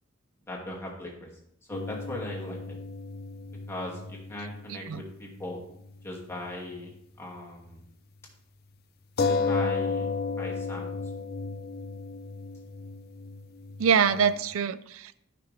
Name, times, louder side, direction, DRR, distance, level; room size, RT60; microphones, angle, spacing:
voice 1, 0.5-1.3 1.7-2.6 3.7-5.6 6.0-6.9 7.2-7.8 9.2-10.1 10.4-11.0, left 1 dB, 15° left, -3 dB, 2.1 m, -38 dB
sound 1, 1.7-5.6 5.8-6.0 9.2-14.4, left 4 dB, 50° left, 0.6 m, -33 dB
voice 2, 4.7-5.0 13.8-15.2, right 7 dB, 70° right, 16 dB, 0.4 m, -25 dB
14.5 x 6.0 x 3.3 m, 0.76 s
head